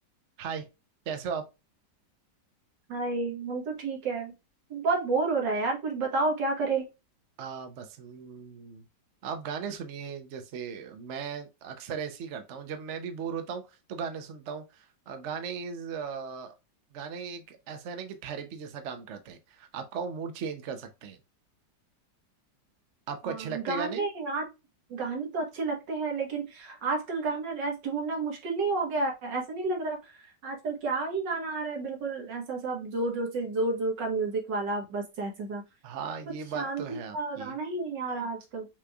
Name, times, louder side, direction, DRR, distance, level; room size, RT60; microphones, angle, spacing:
voice 1, 1.1-1.4 7.4-8.8 9.2-13.6 13.9-16.5 16.9-21.2 23.1-24.1 35.8-37.6, right 6 dB, 55° right, 0.8 m, -37 dB
voice 2, 2.9-4.3 4.7-6.9 23.2-24.5 24.9-30.0 30.4-35.6 36.6-38.7, right 3 dB, 75° right, 2.0 m, -30 dB
5.9 x 3.1 x 2.3 m
omnidirectional pair, 1.9 m